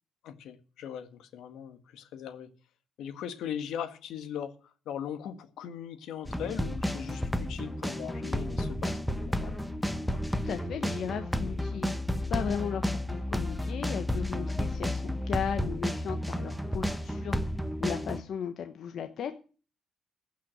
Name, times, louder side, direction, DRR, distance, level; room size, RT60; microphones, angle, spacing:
voice 1, 0.2-2.5 3.0-9.6, left 9 dB, 85° left, 1.6 m, -39 dB
sound 1, 6.2-18.2, left 1 dB, 5° left, 1.3 m, -32 dB
voice 2, 10.1-12.0 12.3-17.5 17.8-19.3, left 8 dB, 65° left, 1.1 m, -36 dB
15.0 x 5.9 x 8.9 m
cardioid pair, 90°, 0 cm